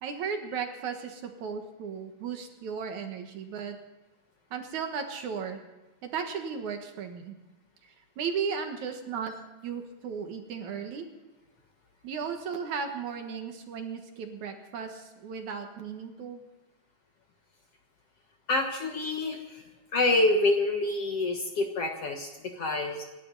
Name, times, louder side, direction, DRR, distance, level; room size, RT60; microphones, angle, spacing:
voice 1, 0.0-3.8 4.5-5.6 6.0-7.4 8.2-9.3 9.6-11.1 12.0-16.4, right 6 dB, 65° right, 5 dB, 2.6 m, -35 dB
voice 2, 18.5-19.6 19.9-23.0, left 2 dB, 55° left, 3 dB, 2.0 m, -27 dB
27.0 x 12.0 x 4.0 m, 1.1 s
omnidirectional pair, 4.0 m